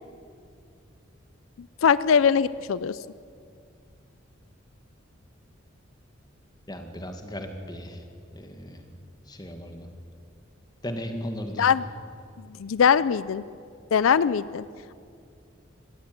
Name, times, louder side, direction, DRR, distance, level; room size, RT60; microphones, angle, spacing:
voice 1, 1.8-3.0 11.6-11.8 12.6-13.4 13.9-14.6, left 7 dB, 90° left, 17 dB, 0.4 m, -21 dB
voice 2, 6.7-8.0 8.3-8.8 9.3-9.9 10.8-11.7, equal, 20° left, 5 dB, 2.0 m, -36 dB
18.5 x 15.0 x 9.6 m, 2.3 s
head